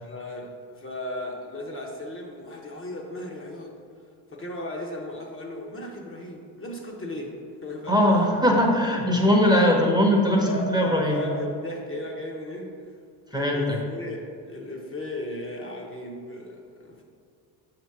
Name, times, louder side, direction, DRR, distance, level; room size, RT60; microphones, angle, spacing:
voice 1, 0.0-3.7 4.3-7.3 7.6-8.2 9.2-9.3 10.3-12.7 13.3-17.0, left 1 dB, 30° left, -1 dB, 0.9 m, -36 dB
voice 2, 7.9-11.3 13.3-13.8, equal, 10° right, -1 dB, 0.8 m, -20 dB
6.8 x 3.0 x 4.6 m, 2.2 s
supercardioid pair, 85°, 44 cm